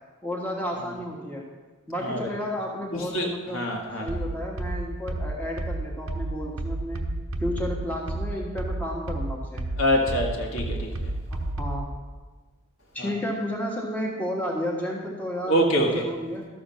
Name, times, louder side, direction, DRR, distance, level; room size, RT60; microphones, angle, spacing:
voice 1, 0.2-1.5 1.9-7.1 7.4-9.7 11.3-11.9 12.9-16.5, equal, 10° left, -2 dB, 1.5 m, -32 dB
voice 2, 3.5-4.1 9.8-10.9 15.5-15.9, equal, 70° left, 0 dB, 1.8 m, -24 dB
sound 1, 4.1-11.9, right 2 dB, 80° right, 0.9 m, -31 dB
13.0 x 6.9 x 5.7 m, 1.3 s
head